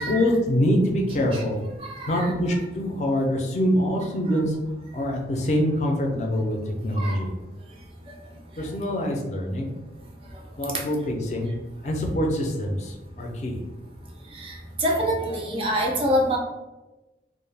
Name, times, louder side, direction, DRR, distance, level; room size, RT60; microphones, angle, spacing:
voice 1, 0.0-1.6 2.1-4.5 4.9-7.3 8.6-9.7 10.6-11.5 11.8-13.6, equal, 40° left, 1 dB, 0.4 m, -24 dB
voice 2, 1.8-2.3 4.3-4.4 7.0-7.2 8.1-8.2 10.7-10.8 14.3-16.4, equal, 30° right, 0 dB, 0.3 m, -26 dB
2.2 x 2.1 x 3.2 m, 1.1 s
head